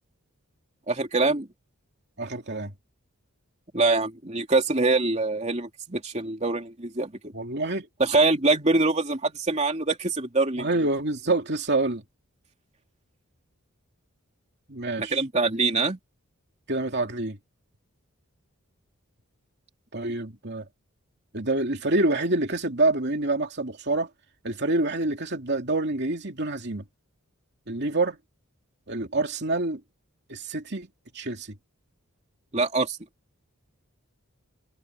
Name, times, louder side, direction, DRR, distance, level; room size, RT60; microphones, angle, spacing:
voice 1, 0.9-1.5 3.7-7.1 8.0-10.7 15.0-16.0 32.5-33.0, right 3 dB, 30° right, 2.9 m, -24 dB
voice 2, 2.2-2.7 7.3-7.9 10.6-12.0 14.7-15.2 16.7-17.4 19.9-20.6 21.3-24.1 24.4-26.8 27.7-28.2 28.9-29.8 30.3-30.9 31.1-31.5, right 2 dB, 50° right, 2.9 m, -27 dB
head